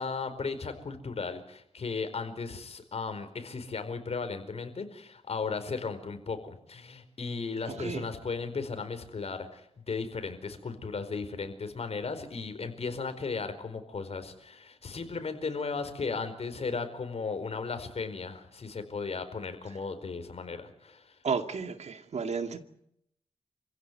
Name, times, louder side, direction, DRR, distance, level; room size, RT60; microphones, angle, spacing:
voice 1, 0.0-21.1, left 4 dB, 55° left, 4.7 m, -36 dB
voice 2, 7.7-8.0 21.2-22.6, right 5 dB, 65° right, 2.4 m, -32 dB
28.0 x 16.0 x 9.6 m
cardioid pair, 80°, 12 cm